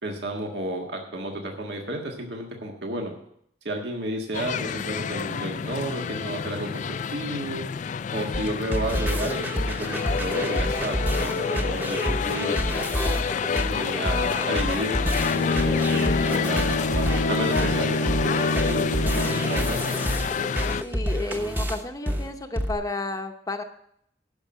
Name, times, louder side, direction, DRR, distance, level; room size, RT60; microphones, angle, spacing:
voice 1, 0.0-3.1 3.6-7.6 8.1-12.9 13.6-19.8, right 1 dB, 70° right, 1 dB, 1.7 m, -32 dB
sound 1, 4.3-20.8, left 6 dB, 45° left, 0.3 m, -29 dB
sound 2, 8.3-22.7, equal, 10° right, 1.0 m, -29 dB
Bowed string instrument, 15.2-19.9, left 2 dB, 70° left, 0.7 m, -27 dB
voice 2, 20.8-23.6, left 2 dB, 20° left, 6 dB, 0.8 m, -31 dB
11.5 x 5.7 x 7.6 m, 0.70 s
head